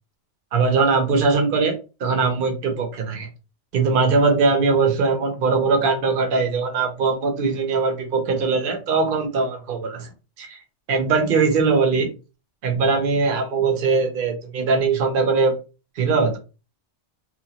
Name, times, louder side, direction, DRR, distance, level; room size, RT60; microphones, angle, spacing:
voice 1, 0.5-3.3 3.7-10.1 10.4-10.6 10.9-12.1 12.6-15.5 16.0-16.4, right 4 dB, 55° right, 0.8 m, -21 dB
2.9 x 2.2 x 2.8 m
omnidirectional pair, 1.2 m